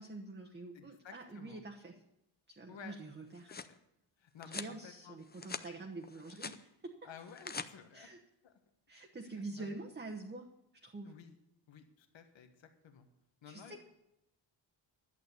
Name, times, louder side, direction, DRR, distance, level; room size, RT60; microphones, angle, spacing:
voice 1, 0.0-2.0 2.5-3.5 4.4-6.9 7.9-8.2 8.9-10.5 10.8-11.1 13.4-13.8, right 2 dB, 25° right, 1 dB, 1.1 m, -46 dB
voice 2, 0.7-1.6 2.7-2.9 3.5-3.8 4.2-5.2 7.0-8.1 8.4-8.5 9.3-9.8 11.0-11.3 11.7-13.1 13.4-13.8, left 7 dB, 80° left, 7 dB, 1.6 m, -54 dB
sound 1, 3.1-3.7 4.4-4.7 5.2-5.7 6.0-6.6 7.2-7.7, left 5 dB, 20° left, 0.6 m, -44 dB
11.5 x 8.4 x 8.3 m, 0.88 s
wide cardioid pair, 145°, 45 cm